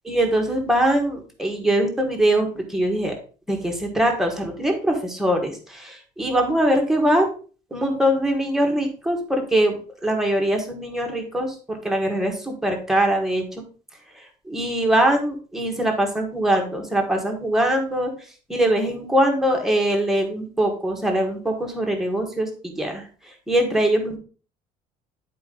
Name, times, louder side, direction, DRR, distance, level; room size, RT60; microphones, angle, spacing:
voice 1, 0.0-3.1 3.5-7.3 7.7-13.6 14.1-18.1 18.5-24.2, right 1 dB, 5° right, 2 dB, 1.5 m, -22 dB
10.0 x 4.6 x 3.8 m, 0.39 s
cardioid pair, 170°, 14 cm